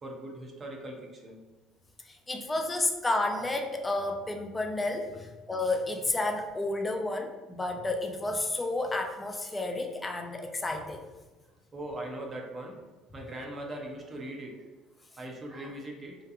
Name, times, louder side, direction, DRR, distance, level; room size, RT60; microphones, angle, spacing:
voice 1, 0.0-1.4 5.1-5.2 11.7-12.8 13.1-14.6 15.1-16.2, right 1 dB, 35° right, 1 dB, 0.6 m, -40 dB
voice 2, 2.1-11.0, left 2 dB, 20° left, 3 dB, 0.4 m, -31 dB
2.8 x 2.2 x 2.4 m, 1.2 s
supercardioid pair, 80°, 0 cm